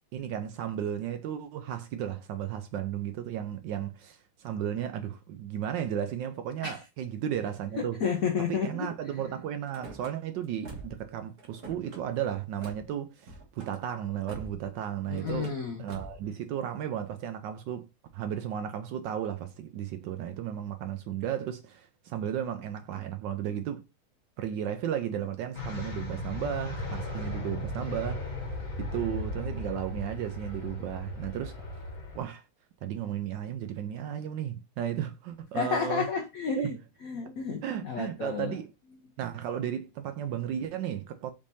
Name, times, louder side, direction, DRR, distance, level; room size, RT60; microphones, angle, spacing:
voice 1, 0.1-8.0 8.5-15.5 15.8-17.9 18.1-23.8 24.4-28.2 28.8-31.5 32.1-32.4 32.8-36.1 36.6-36.7 37.6-38.7 39.2-41.3, right 9 dB, 75° right, 1.1 m, -34 dB
voice 2, 7.8-9.1 15.1-15.8 35.5-36.8 37.0-38.6, left 6 dB, 75° left, 0.8 m, -31 dB
Car / Slam, 9.7-10.1 10.6-11.1 11.4-12.0 12.6-12.8 13.2-13.7 14.3-14.7 15.1-15.6 15.9-16.3, right 3 dB, 50° right, 1.8 m, -44 dB
sound 1, 25.5-32.2, left 2 dB, 45° left, 1.7 m, -36 dB
5.1 x 3.5 x 2.6 m
omnidirectional pair, 2.3 m